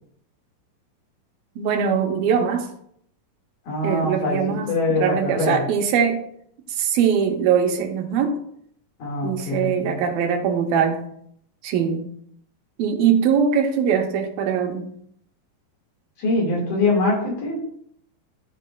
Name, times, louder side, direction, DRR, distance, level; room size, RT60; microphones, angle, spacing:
voice 1, 1.6-2.7 3.8-4.7 5.0-6.2 6.8-8.4 9.2-11.0 11.6-12.1 12.8-14.9, right 7 dB, 85° right, 3 dB, 2.7 m, -21 dB
voice 2, 3.7-5.6 9.0-10.0 16.2-17.6, left 2 dB, 60° left, -2 dB, 3.6 m, -23 dB
12.5 x 5.3 x 2.4 m, 0.68 s
omnidirectional pair, 4.2 m